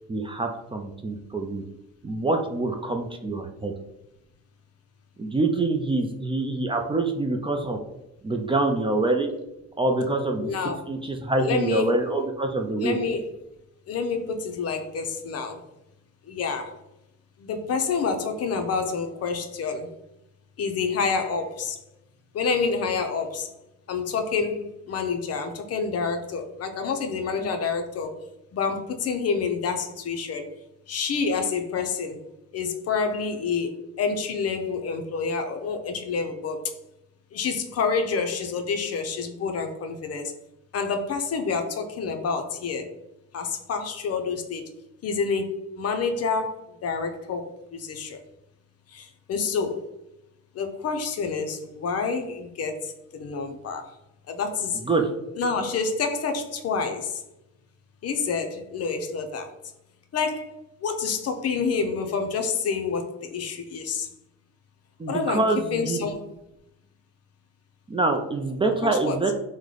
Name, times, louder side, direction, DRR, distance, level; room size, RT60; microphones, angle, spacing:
voice 1, 0.1-1.6 2.0-3.7 5.2-7.8 8.2-9.3 9.8-10.5 10.9-13.0 27.4-27.5 54.7-55.1 65.0-66.1 67.9-69.3, right 2 dB, 20° right, 3 dB, 0.4 m, -25 dB
voice 2, 10.4-10.8 11.4-11.9 12.8-13.2 13.9-15.6 16.3-16.7 17.4-19.9 20.6-21.8 22.3-23.5 23.9-28.1 28.5-30.4 30.9-32.2 32.5-33.7 34.0-36.7 37.3-40.3 40.7-42.9 43.3-44.6 45.0-46.6 46.8-48.2 48.9-49.8 50.5-53.8 54.3-54.8 55.4-57.2 58.0-59.5 60.1-60.5 60.8-64.1 65.1-65.4 65.7-66.3 68.8-69.2, left 5 dB, 55° left, 6 dB, 0.6 m, -28 dB
3.1 x 2.2 x 3.8 m, 0.88 s
cardioid pair, 90°, 30 cm